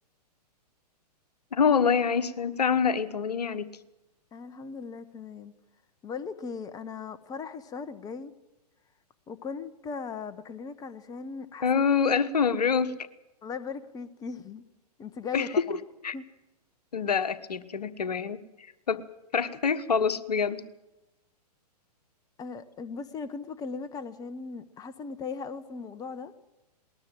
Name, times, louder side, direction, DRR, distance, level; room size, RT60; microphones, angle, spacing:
voice 1, 1.5-3.7 11.6-13.0 15.3-15.8 16.0-16.1 16.9-19.0 19.3-20.6, left 6 dB, 70° left, 13 dB, 1.4 m, -26 dB
voice 2, 4.3-5.5 6.0-8.3 9.3-11.8 13.4-14.6 15.0-15.8 16.1-16.3 22.4-26.3, left 5 dB, 15° left, 13 dB, 1.1 m, -38 dB
20.0 x 19.5 x 7.7 m, 0.96 s
figure-of-eight pair, 115°, 21 cm